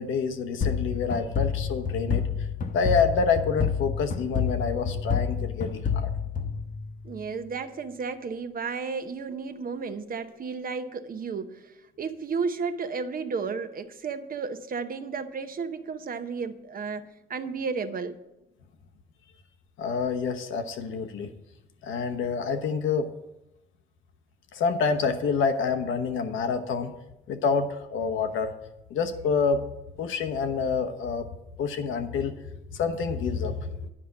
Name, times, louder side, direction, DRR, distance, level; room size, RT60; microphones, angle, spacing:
voice 1, 0.0-2.3 2.7-6.1 19.8-21.3 21.8-23.1 24.5-26.9 27.3-28.5 28.9-29.6 30.0-31.3 31.6-33.9, left 5 dB, 80° left, 7 dB, 1.0 m, -27 dB
sound 1, 0.6-7.2, left 6 dB, 40° left, 1.0 m, -29 dB
voice 2, 7.0-18.2, right 5 dB, 45° right, 10 dB, 0.8 m, -33 dB
10.0 x 5.1 x 7.1 m, 0.91 s
cardioid pair, 90°, 20 cm